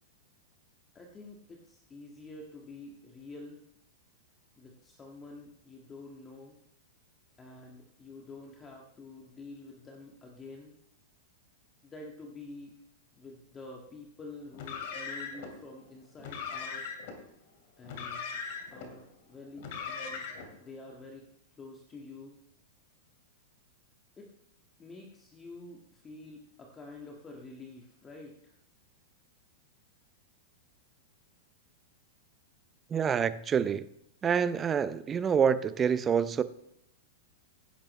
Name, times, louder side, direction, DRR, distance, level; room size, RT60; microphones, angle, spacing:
voice 1, 0.9-3.7 4.6-6.6 7.4-10.7 11.8-12.7 13.2-16.9 17.8-18.3 18.7-20.2 20.6-21.3 21.6-22.4 24.2-24.3 24.8-28.5, left 3 dB, 20° left, 1.7 m, -48 dB
Car, 14.5-15.5 16.2-17.2 17.8-18.9 19.6-20.5, left 5 dB, 55° left, 2.6 m, -39 dB
voice 2, 32.9-33.9 34.2-36.4, right 7 dB, 25° right, 0.6 m, -27 dB
16.5 x 10.5 x 3.2 m
hypercardioid pair, 105°, 0 cm